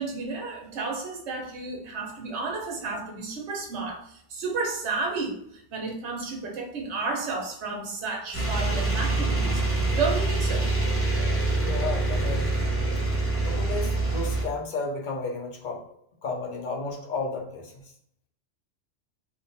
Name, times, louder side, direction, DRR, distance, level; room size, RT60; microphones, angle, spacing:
voice 1, 0.0-5.3 5.7-9.6 9.9-10.7, right 4 dB, 70° right, 0 dB, 1.2 m, -32 dB
sound 1, 8.3-14.4, right 2 dB, 15° left, 0.7 m, -25 dB
voice 2, 11.6-12.7 13.4-15.8 16.2-17.8, left 3 dB, 45° left, 0 dB, 0.8 m, -33 dB
3.5 x 2.2 x 4.0 m, 0.68 s
omnidirectional pair, 1.2 m